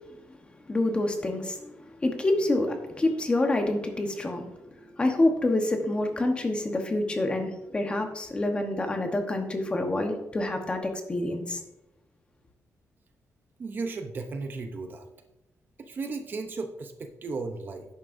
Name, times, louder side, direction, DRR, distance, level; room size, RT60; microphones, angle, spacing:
voice 1, 0.7-1.7 2.0-11.6, left 2 dB, 20° left, 4 dB, 1.1 m, -27 dB
voice 2, 13.6-15.1 15.8-17.9, right 3 dB, 35° right, 6 dB, 0.7 m, -35 dB
11.0 x 9.5 x 2.6 m, 0.92 s
wide cardioid pair, 175°, 6 cm